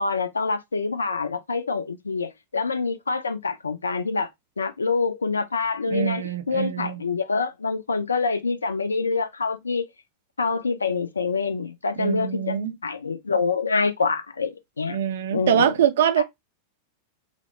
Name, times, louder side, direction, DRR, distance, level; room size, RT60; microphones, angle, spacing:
voice 1, 0.0-4.3 4.6-9.8 10.4-12.6 12.8-15.0 15.3-15.7 16.2-16.3, left 4 dB, 75° left, 0.4 m, -26 dB
voice 2, 5.9-7.0 12.0-12.7 14.9-16.2, right 9 dB, 60° right, 0.5 m, -23 dB
2.7 x 2.1 x 3.0 m
figure-of-eight pair, 90°, 0 cm